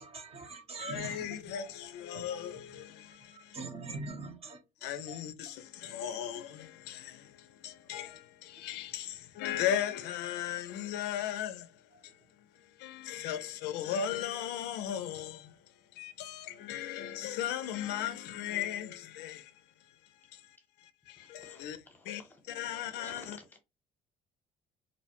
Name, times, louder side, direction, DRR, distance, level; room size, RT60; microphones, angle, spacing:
voice 1, 0.0-1.5 2.1-2.3 3.0-5.2 11.9-12.1, right 3 dB, 35° right, 0.7 m, -44 dB
voice 2, 0.8-3.6 4.8-21.8 22.1-22.2 22.5-23.4, left 10 dB, 85° left, 0.4 m, -37 dB
voice 3, 20.2-20.7 21.1-23.6, left 1 dB, 10° left, 0.9 m, -55 dB
2.5 x 2.0 x 2.9 m
cardioid pair, 110°, 17 cm